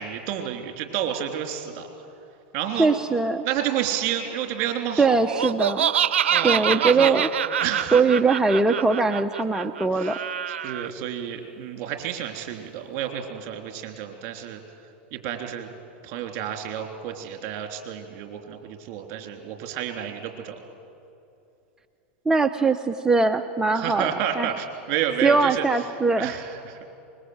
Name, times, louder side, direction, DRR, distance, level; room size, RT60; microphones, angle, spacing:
voice 1, 0.0-1.9 2.5-2.9 3.4-5.2 6.3-7.2 7.6-8.0 9.9-10.2 10.5-14.6 15.1-15.7 16.0-20.6 23.7-25.7 26.2-26.8, right 10 dB, 50° right, 4 dB, 3.5 m, -30 dB
voice 2, 2.8-3.4 5.0-5.9 6.4-7.3 7.9-10.2 22.3-24.5 25.2-26.4, right 4 dB, 10° right, 7 dB, 0.8 m, -21 dB
Laughter, 5.3-10.9, right 9 dB, 85° right, 0.5 m, -25 dB
24.5 x 21.5 x 8.1 m, 2.7 s
hypercardioid pair, 105°, 6 cm